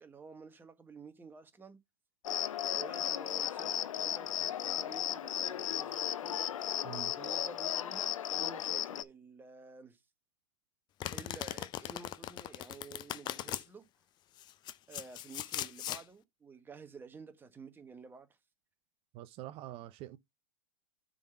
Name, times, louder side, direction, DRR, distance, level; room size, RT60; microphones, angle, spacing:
voice 1, 0.0-1.8 2.7-6.4 7.2-10.0 11.1-13.8 14.9-18.3, right 5 dB, 10° right, 1.3 m, -51 dB
Cricket, 2.2-9.0, left 10 dB, 85° left, 0.7 m, -35 dB
Domestic sounds home sounds, 11.0-13.6 14.4-16.0, left 13 dB, 25° left, 0.5 m, -39 dB
voice 2, 19.1-20.2, right 14 dB, 35° right, 0.6 m, -45 dB
7.0 x 4.0 x 5.6 m
hypercardioid pair, 130°, 17 cm